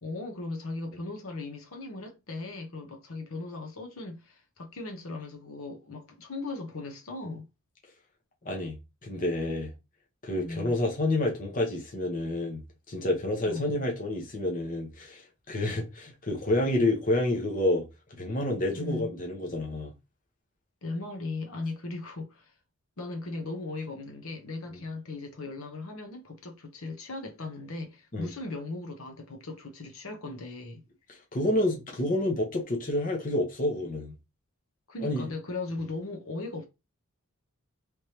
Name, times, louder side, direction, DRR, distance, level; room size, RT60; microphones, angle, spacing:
voice 1, 0.0-7.5 10.4-10.7 13.5-13.8 18.7-19.1 20.8-22.5 23.0-30.8 34.9-36.6, left 3 dB, 65° left, 0.9 m, -38 dB
voice 2, 8.4-9.7 10.2-12.6 12.9-19.9 24.7-24.8 28.1-28.3 31.1-34.1 35.0-35.3, left 1 dB, 40° left, 1.0 m, -29 dB
3.5 x 3.2 x 2.8 m
head